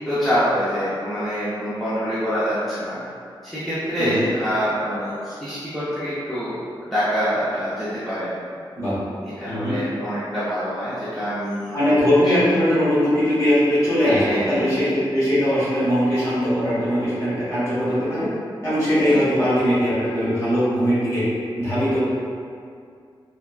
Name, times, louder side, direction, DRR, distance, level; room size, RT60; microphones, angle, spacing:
voice 1, 0.1-3.0 3.4-6.6 6.8-8.3 9.4-12.0 12.2-12.3 14.0-15.0 19.1-19.2, equal, ahead, -13 dB, 0.5 m, -25 dB
voice 2, 11.7-18.3 18.6-21.2 21.6-22.0, equal, 35° left, -11 dB, 1.2 m, -20 dB
3.3 x 2.1 x 2.3 m, 2.3 s
wide cardioid pair, 170°, 9 cm